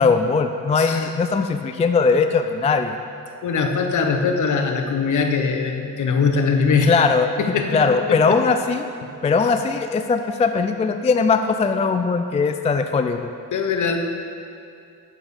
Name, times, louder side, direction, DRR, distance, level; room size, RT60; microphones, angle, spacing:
voice 1, 0.0-3.0 6.9-7.3 7.7-8.9 9.2-13.3, left 4 dB, 20° left, 8 dB, 0.3 m, -20 dB
voice 2, 0.7-1.1 3.4-7.0 7.4-8.4 9.0-9.1 9.4-9.5 13.5-14.0, left 5 dB, 55° left, 4 dB, 1.0 m, -22 dB
8.8 x 7.3 x 4.9 m, 2.5 s
cardioid pair, 95°, 36 cm